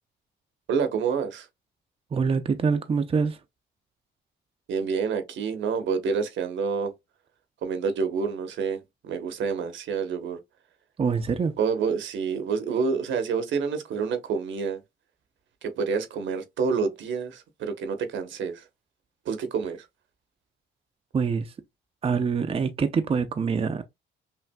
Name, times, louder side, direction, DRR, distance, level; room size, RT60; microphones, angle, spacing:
voice 1, 0.7-1.5 4.7-6.9 7.6-10.4 11.6-14.8 15.6-18.6 19.3-19.8, right 5 dB, 70° right, 1.0 m, -28 dB
voice 2, 2.1-3.4 11.0-11.5 21.1-21.5 22.0-23.9, right 5 dB, 30° right, 0.5 m, -25 dB
5.7 x 2.5 x 2.2 m
cardioid pair, 90°, 20 cm